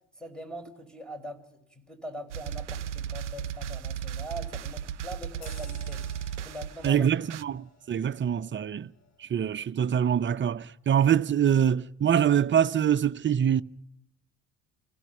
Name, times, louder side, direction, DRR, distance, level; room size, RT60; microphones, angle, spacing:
voice 1, 0.2-6.1 6.4-7.0, equal, ahead, 5.0 m, -42 dB
sound 1, 2.3-7.4, right 9 dB, 90° right, 0.7 m, -35 dB
sound 2, 5.4-10.4 10.8-11.0, left 5 dB, 50° left, 7.9 m, -55 dB
voice 2, 6.8-8.9 9.2-13.6, right 9 dB, 35° right, 0.9 m, -24 dB
29.5 x 16.5 x 5.5 m
hypercardioid pair, 65°, 35 cm